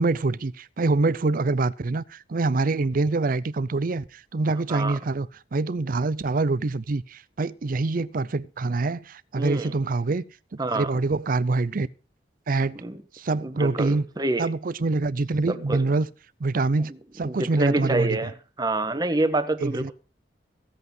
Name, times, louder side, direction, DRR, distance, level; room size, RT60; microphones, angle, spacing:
voice 1, 0.0-10.2 10.7-11.9 12.5-12.8 13.1-14.0 14.4-16.1 16.4-18.2 19.6-19.9, right 3 dB, 50° right, 0.5 m, -25 dB
voice 2, 9.4-9.7 10.6-10.9 12.7-13.0 13.4-14.5 15.5-15.8 16.9-17.0 17.2-19.9, right 2 dB, 25° right, 1.3 m, -27 dB
16.0 x 8.2 x 5.4 m
head